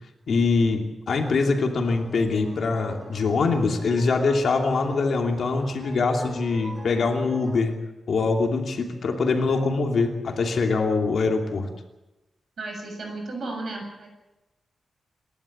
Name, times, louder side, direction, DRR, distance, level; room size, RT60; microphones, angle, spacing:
voice 1, 0.3-7.7 8.1-11.7, left 4 dB, 60° left, 3 dB, 2.9 m, -23 dB
sound 1, 1.9-7.6, right 2 dB, 40° right, 6.3 m, -43 dB
voice 2, 12.6-14.1, right 2 dB, 55° right, 2 dB, 7.3 m, -34 dB
27.5 x 12.5 x 8.8 m, 1.0 s
wide cardioid pair, 165°, 0 cm